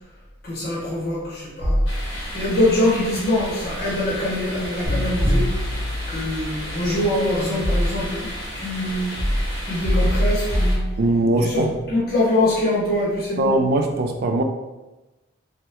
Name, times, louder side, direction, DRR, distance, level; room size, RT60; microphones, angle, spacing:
voice 1, 0.4-1.8 2.3-5.6 6.1-9.1 9.6-10.9 11.4-13.6, left 1 dB, 50° left, -7 dB, 0.8 m, -24 dB
sound 1, 1.6-2.5 5.2-6.0 6.9-8.3 9.2-11.4, equal, 10° left, 0.6 m, -23 dB
sound 2, 1.9-10.8, equal, 90° left, 1.1 m, -33 dB
sound 3, 4.9-7.0, left 1 dB, 85° right, 1.0 m, -28 dB
voice 2, 11.0-11.7 13.4-14.4, right 2 dB, 50° right, 4 dB, 0.3 m, -20 dB
3.2 x 2.1 x 2.9 m, 1.1 s
head